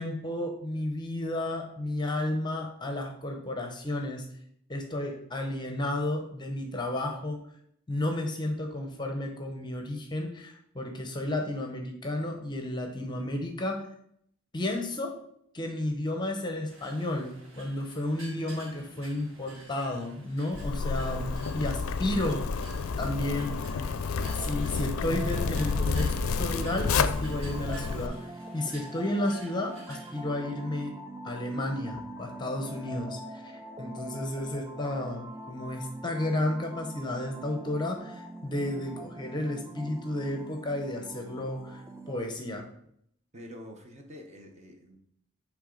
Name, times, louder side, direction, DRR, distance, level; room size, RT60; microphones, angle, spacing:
voice 1, 0.0-4.3 4.7-7.4 7.9-13.9 14.5-15.2 15.5-21.3 21.5-22.4 23.0-23.9 24.3-31.0 31.2-42.7, left 1 dB, 20° left, 3 dB, 0.7 m, -32 dB
sound 1, 16.7-30.2, right 2 dB, 65° right, 1.5 m, -51 dB
Zipper (clothing), 20.5-28.1, left 4 dB, 80° left, 0.4 m, -30 dB
sound 2, 23.0-42.2, right 1 dB, 15° right, 0.4 m, -44 dB
voice 2, 43.3-45.0, left 1 dB, 35° right, 2 dB, 0.9 m, -46 dB
8.0 x 3.4 x 3.8 m, 0.69 s
head